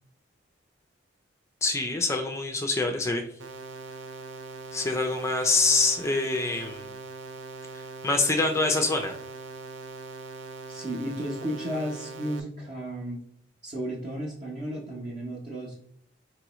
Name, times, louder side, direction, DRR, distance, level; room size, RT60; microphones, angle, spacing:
voice 1, 1.6-3.2 4.7-6.9 8.0-9.2, left 3 dB, 15° left, 4 dB, 0.4 m, -25 dB
sound 1, 3.4-12.4, right 3 dB, 80° right, 0.5 m, -41 dB
voice 2, 10.7-13.2 13.6-15.8, right 1 dB, 35° right, -5 dB, 0.8 m, -33 dB
4.9 x 3.1 x 3.0 m, 0.68 s
head